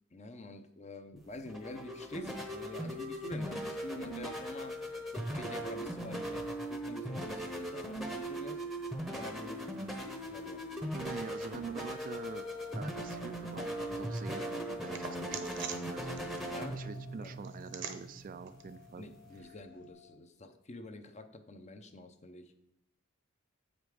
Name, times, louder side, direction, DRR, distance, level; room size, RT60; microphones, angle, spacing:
voice 1, 0.1-4.8 5.1-8.6 9.1-10.6 16.5-16.8 17.2-17.4 19.0-22.6, left 2 dB, 30° left, 8 dB, 0.6 m, -47 dB
sound 1, 1.2-19.4, right 1 dB, ahead, 0.8 m, -39 dB
voice 2, 10.9-12.5 12.7-19.1, right 5 dB, 40° right, 11 dB, 0.3 m, -46 dB
sound 2, 12.1-20.2, left 10 dB, 50° left, 1.4 m, -56 dB
sound 3, 13.1-19.9, right 7 dB, 55° right, 0.8 m, -49 dB
7.6 x 5.2 x 4.7 m, 0.83 s
head